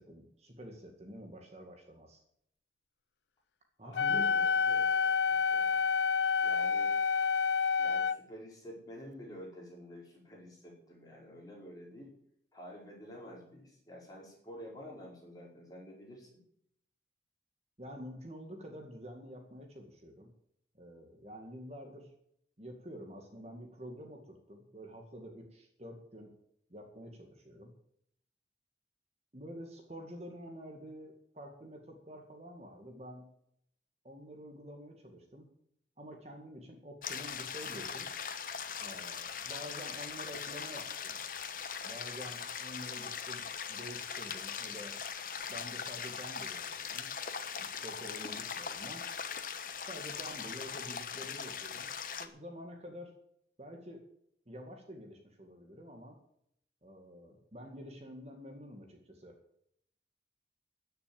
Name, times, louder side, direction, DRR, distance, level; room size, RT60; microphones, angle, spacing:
voice 1, 0.0-2.2 3.8-4.3 17.8-20.3 20.8-22.1 22.6-26.3 26.7-27.7 29.3-33.3 34.0-35.5 36.0-38.1 38.8-41.2 41.8-45.0 45.5-47.1 47.6-49.0 49.8-53.1 53.6-54.0 54.5-56.2 56.8-59.4, equal, 35° right, 3 dB, 2.1 m, -48 dB
voice 2, 3.8-5.8 6.4-6.9 7.8-12.1 12.5-16.4, equal, 20° left, -3 dB, 4.9 m, -49 dB
Wind instrument woodwind instrument, 3.9-8.2, left 5 dB, 80° left, 0.6 m, -28 dB
sound 1, 37.0-52.3, left 7 dB, 50° left, 1.1 m, -40 dB
14.0 x 6.9 x 9.2 m, 0.71 s
head